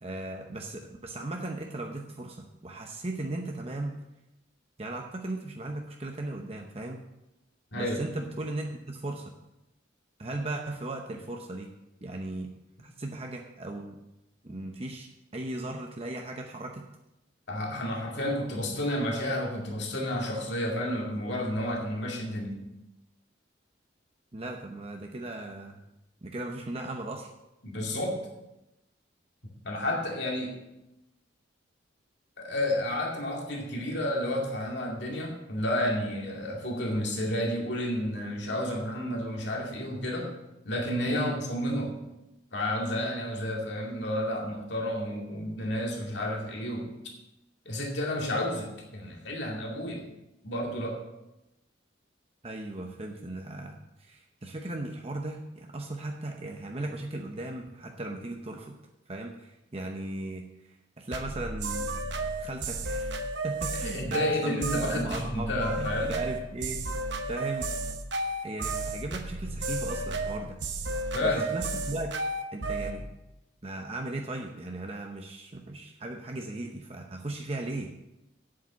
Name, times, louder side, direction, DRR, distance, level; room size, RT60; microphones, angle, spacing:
voice 1, 0.0-4.0 4.8-7.0 7.7-9.3 10.2-11.7 12.0-12.5 12.8-14.0 14.4-16.9 24.3-25.8 26.2-27.3 41.1-41.3 52.4-58.8 59.1-61.9 62.4-65.5 65.8-66.8 67.2-67.7 68.4-70.6 71.2-72.2 72.5-73.1 73.6-77.9, right 2 dB, 30° right, 2 dB, 0.8 m, -37 dB
voice 2, 7.7-8.0 17.5-22.6 27.6-28.2 29.6-30.6 32.4-40.3 40.6-42.0 42.5-46.9 47.7-50.0 50.4-51.0 63.8-66.1 71.1-71.5, left 1 dB, 65° left, 0 dB, 2.4 m, -31 dB
sound 1, 61.1-73.0, right 2 dB, 70° right, 1.0 m, -33 dB
8.7 x 7.5 x 7.1 m, 0.92 s
head